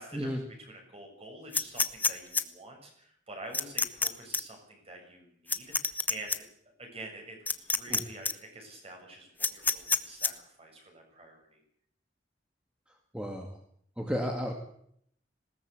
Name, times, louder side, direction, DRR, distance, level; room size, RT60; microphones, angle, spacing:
voice 1, 0.0-6.5 6.8-11.6, right 2 dB, 35° right, 3 dB, 7.2 m, -47 dB
sound 1, 1.5-2.4 3.5-4.1 4.3-4.4 5.5-6.4 7.5-8.0 8.3-8.4 9.4-10.3, left 3 dB, 10° left, 1.0 m, -27 dB
voice 2, 13.1-13.5 14.0-14.5, equal, 5° right, 3 dB, 2.2 m, -32 dB
20.5 x 18.0 x 8.3 m, 0.69 s
head